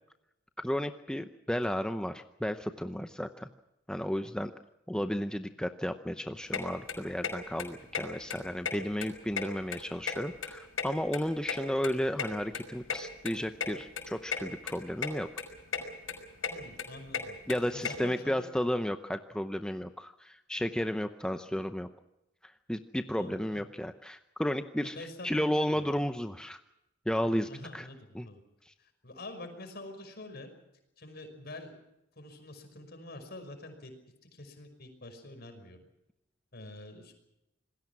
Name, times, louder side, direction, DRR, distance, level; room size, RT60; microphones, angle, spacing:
voice 1, 0.6-3.5 3.9-4.5 4.9-15.3 17.5-21.9 22.4-24.9 25.2-26.6 27.1-27.9 28.1-28.3 28.7-28.8, equal, 5° left, 8 dB, 0.7 m, -33 dB
sound 1, 6.5-6.6 6.9-7.3 7.6-7.7 7.9-8.0 8.3-9.1 9.3-10.5 10.8-12.3 12.5-12.6 12.9-13.0 13.3-13.4 13.6-13.7 14.0-14.4 14.7-15.1 15.4-15.8 16.1-17.9, left 6 dB, 85° left, 5.4 m, -34 dB
voice 2, 16.5-17.4 17.7-18.5 23.2-23.6 24.8-25.9 27.5-28.4 28.8-30.5 31.0-31.8 32.2-33.9 34.3-35.8 36.5-37.1, left 2 dB, 55° left, 7 dB, 5.5 m, -46 dB
27.0 x 20.5 x 6.0 m, 0.88 s
head